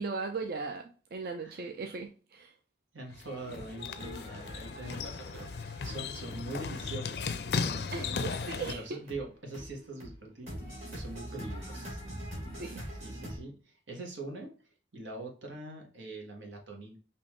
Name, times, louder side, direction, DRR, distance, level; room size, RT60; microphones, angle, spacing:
voice 1, 0.0-2.5 7.9-9.0 12.6-12.9, right 4 dB, 55° right, 0.4 m, -38 dB
voice 2, 2.9-8.3 8.7-10.6 10.9-12.0 13.0-14.5 14.9-17.0, right 2 dB, 90° right, 1.4 m, -43 dB
sound 1, 3.1-8.7, left 5 dB, 60° left, 0.4 m, -36 dB
sound 2, 3.3-13.4, equal, 40° right, 2.1 m, -44 dB
5.4 x 2.9 x 3.1 m
head